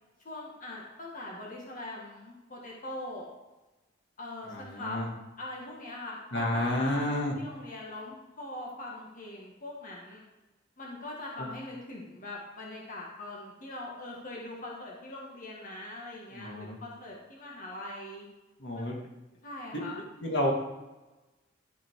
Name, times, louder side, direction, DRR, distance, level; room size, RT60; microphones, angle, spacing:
voice 1, 0.2-3.3 4.2-5.0 5.4-10.2 10.8-18.3 18.7-18.9 19.4-20.0, left 2 dB, 45° left, -3 dB, 1.9 m, -42 dB
voice 2, 4.5-5.1 6.3-7.3 11.4-11.5 16.3-16.8 18.6-19.0 19.7-19.8 20.2-20.5, left 1 dB, 65° left, -1 dB, 2.0 m, -30 dB
12.5 x 5.9 x 4.7 m, 1.1 s
head